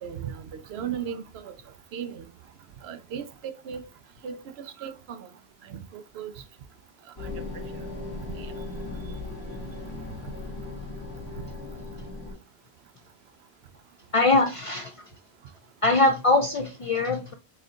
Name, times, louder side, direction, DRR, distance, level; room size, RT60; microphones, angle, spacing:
voice 1, 0.0-1.5 1.9-2.3 2.8-3.8 4.2-4.4 4.6-5.3 5.7-6.3 7.2-7.6 8.2-8.5, right 8 dB, 85° right, 0.8 m, -37 dB
sound 1, 7.2-12.3, left 2 dB, 25° left, 1.5 m, -37 dB
voice 2, 14.1-15.0 15.8-17.3, left 2 dB, 55° left, 0.4 m, -22 dB
4.2 x 3.8 x 2.4 m
omnidirectional pair, 1.0 m